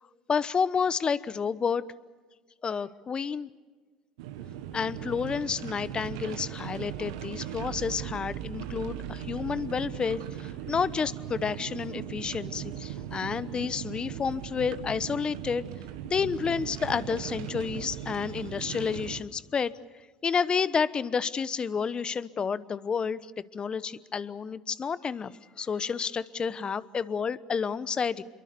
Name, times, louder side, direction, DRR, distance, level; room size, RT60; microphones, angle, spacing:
voice 1, 0.3-1.8 2.6-3.5 4.7-15.6 16.0-19.7 20.2-23.2 23.5-25.3 25.6-28.2, left 6 dB, 35° left, 17 dB, 1.0 m, -30 dB
sound 1, 4.2-19.2, right 11 dB, 75° right, 1.7 m, -38 dB
27.5 x 23.0 x 6.9 m, 1.4 s
hypercardioid pair, 70°, 3 cm